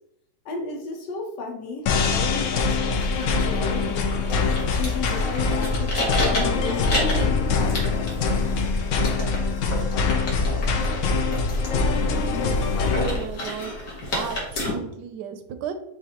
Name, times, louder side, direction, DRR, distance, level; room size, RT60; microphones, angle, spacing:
voice 1, 0.4-4.2 4.8-8.1, left 4 dB, 85° left, 2 dB, 1.4 m, -34 dB
sound 1, 1.9-13.1, left 4 dB, 70° left, 0.7 m, -23 dB
sound 2, 2.9-14.7, left 2 dB, 50° left, 1.6 m, -32 dB
voice 2, 13.0-13.8 14.1-15.7, right 8 dB, 80° right, 8 dB, 1.2 m, -33 dB
7.1 x 2.6 x 2.9 m, 0.77 s
omnidirectional pair, 1.8 m